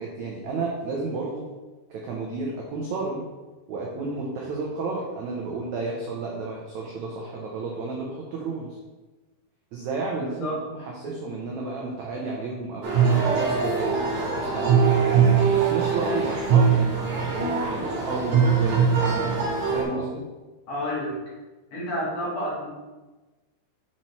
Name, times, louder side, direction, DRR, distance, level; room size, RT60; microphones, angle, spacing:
voice 1, 0.0-1.5 1.9-3.2 3.7-8.8 9.7-15.2 15.7-17.3 17.7-20.2, right 3 dB, 90° right, -2 dB, 1.6 m, -32 dB
voice 2, 10.2-10.5 20.7-21.2 21.7-22.7, equal, 60° left, -6 dB, 1.9 m, -30 dB
sound 1, 12.8-19.8, right 6 dB, 55° right, 2.7 m, -22 dB
7.6 x 4.3 x 4.4 m, 1.2 s
omnidirectional pair, 4.6 m